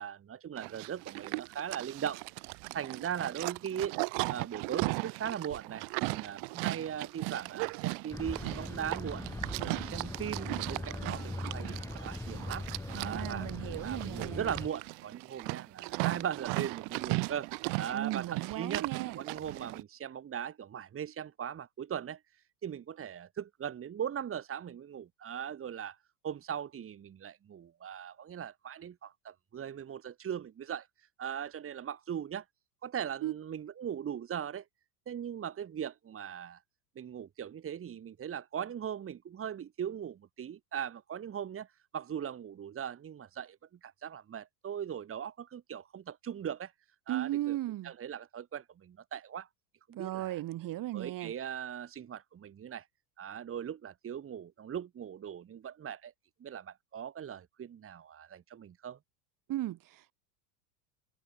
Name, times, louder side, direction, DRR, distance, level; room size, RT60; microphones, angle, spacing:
voice 1, 0.0-2.2 2.5-4.0 4.3-9.2 9.6-12.7 13.0-17.5 17.8-18.9 19.2-22.2 22.6-26.0 26.2-32.4 32.8-34.6 35.1-36.6 37.0-43.6 43.8-46.7 47.1-47.6 47.8-49.5 49.9-50.4 50.9-52.9 53.2-56.1 56.4-59.0, right 9 dB, 30° right, 2.4 m, -39 dB
Livestock farm animals working animals, 0.6-19.8, right 37 dB, 60° right, 5.0 m, -37 dB
sound 1, 8.1-14.7, left 2 dB, 5° left, 6.9 m, -40 dB
voice 2, 12.9-14.5 17.9-19.2 33.2-33.3 47.1-47.9 50.0-51.3 59.5-60.2, right 15 dB, 45° right, 3.5 m, -36 dB
hypercardioid pair, 105°, 47 cm